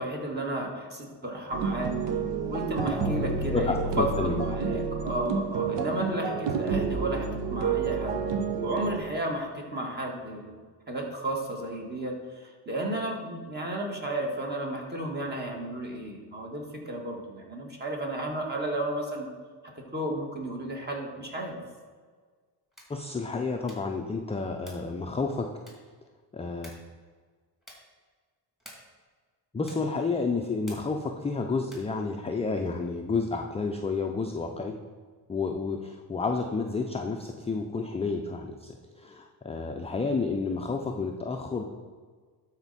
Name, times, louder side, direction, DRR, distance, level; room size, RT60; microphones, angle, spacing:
voice 1, 0.0-1.9 2.4-4.1 4.3-8.2 8.6-10.6 10.9-19.3 19.9-21.6, right 1 dB, 25° right, 0 dB, 1.8 m, -33 dB
sound 1, 1.5-9.0, right 5 dB, 75° right, 1.0 m, -29 dB
voice 2, 3.5-4.5 4.7-4.8 22.9-25.5 26.3-26.7 29.5-34.7 35.3-41.7, left 4 dB, 15° left, 3 dB, 0.4 m, -30 dB
sound 2, 22.6-23.0 23.6-24.0 24.6-25.0 25.6-26.0 26.6-27.0 27.6-28.0 28.6-29.0 29.6-30.0 30.6-31.0 31.6-32.0, left 1 dB, ahead, 2.7 m, -51 dB
12.0 x 4.4 x 4.1 m, 1.5 s
cardioid pair, 105°, 43 cm